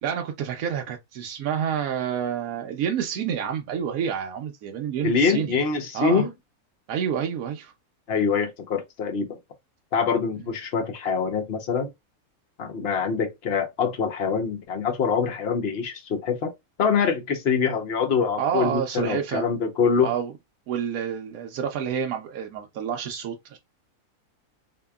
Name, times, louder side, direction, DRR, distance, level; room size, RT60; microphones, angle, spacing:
voice 1, 0.0-5.5 5.9-6.3 6.9-7.7 18.4-19.5 20.0-20.3 20.7-23.6, right 8 dB, 75° right, 1.1 m, -28 dB
voice 2, 5.0-6.3 8.1-9.4 9.9-11.9 12.6-16.5 16.8-20.1, left 5 dB, 50° left, 0.9 m, -24 dB
4.4 x 2.8 x 2.2 m
omnidirectional pair, 1.5 m